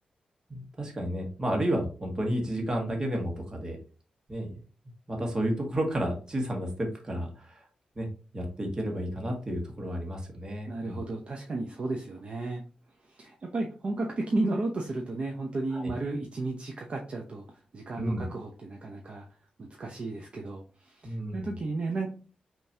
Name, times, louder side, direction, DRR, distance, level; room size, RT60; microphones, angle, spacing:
voice 1, 0.5-3.8 4.3-4.5 5.1-7.6 7.9-8.1 8.3-11.0 15.7-15.9 18.0-18.3 21.0-21.5, right 1 dB, 30° right, 1 dB, 1.5 m, -31 dB
voice 2, 10.7-12.6 13.0-19.3 19.6-22.1, right 2 dB, 50° right, 1 dB, 0.7 m, -33 dB
5.5 x 3.0 x 2.7 m, 0.37 s
wide cardioid pair, 100°, 3 cm